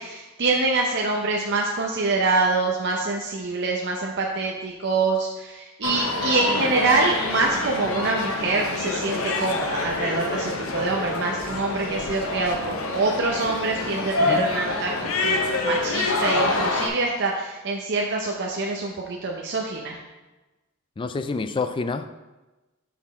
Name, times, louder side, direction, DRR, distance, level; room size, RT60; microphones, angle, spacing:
voice 1, 0.0-14.9 15.2-20.0, right 3 dB, 55° right, -1 dB, 0.7 m, -25 dB
sound 1, 5.8-16.9, left 2 dB, 80° left, 0.9 m, -26 dB
voice 2, 21.0-22.1, left 3 dB, 25° left, 10 dB, 0.3 m, -28 dB
6.2 x 5.9 x 4.2 m, 1.1 s
head